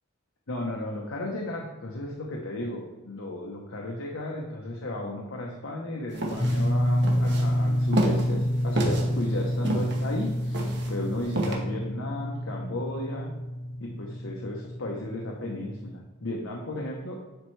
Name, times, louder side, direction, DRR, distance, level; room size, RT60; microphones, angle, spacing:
voice 1, 0.5-13.3 13.8-17.2, left 1 dB, 90° left, -2 dB, 0.9 m, -34 dB
sound 1, 6.1-11.5, right 1 dB, 60° right, 1.2 m, -29 dB
sound 2, 6.4-16.0, equal, 15° left, 0.4 m, -28 dB
10.5 x 4.4 x 3.3 m, 1.1 s
head